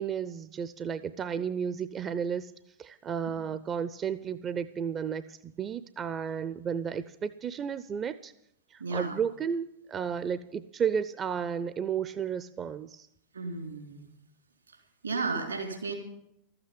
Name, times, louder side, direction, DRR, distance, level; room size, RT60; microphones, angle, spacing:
voice 1, 0.0-2.5 2.8-8.3 8.7-13.1, right 7 dB, 25° right, 13 dB, 0.5 m, -33 dB
voice 2, 8.8-9.2 13.3-14.1 14.7-14.8 15.0-15.9, right 4 dB, 80° right, 3 dB, 3.4 m, -33 dB
13.0 x 8.8 x 9.4 m, 0.80 s
figure-of-eight pair, 90°, 0 cm